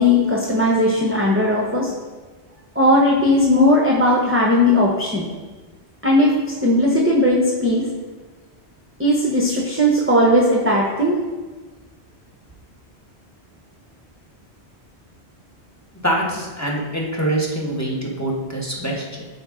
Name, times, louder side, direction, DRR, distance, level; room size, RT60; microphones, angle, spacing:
voice 1, 0.0-1.9 2.7-5.3 6.0-7.9 9.0-11.2, left 1 dB, 15° right, -2 dB, 0.8 m, -17 dB
voice 2, 16.0-19.3, right 1 dB, 15° left, -2 dB, 1.3 m, -24 dB
12.5 x 4.3 x 3.7 m, 1.3 s
omnidirectional pair, 1.1 m